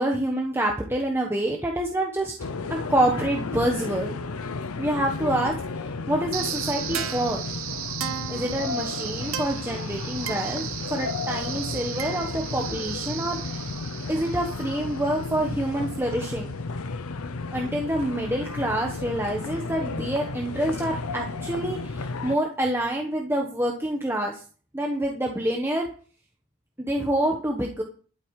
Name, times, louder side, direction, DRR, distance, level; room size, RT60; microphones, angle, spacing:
voice 1, 0.0-2.3 2.7-4.1 4.8-5.5 6.1-7.4 8.3-10.6 10.9-13.4 14.1-16.6 17.5-24.4 24.7-25.9 26.8-27.8, right 1 dB, 10° right, 1 dB, 1.2 m, -27 dB
sound 1, 2.4-22.4, left 3 dB, 80° left, 0.7 m, -33 dB
sound 2, 6.3-15.4, right 10 dB, 70° right, 1.1 m, -35 dB
12.5 x 8.6 x 4.8 m, 0.41 s
head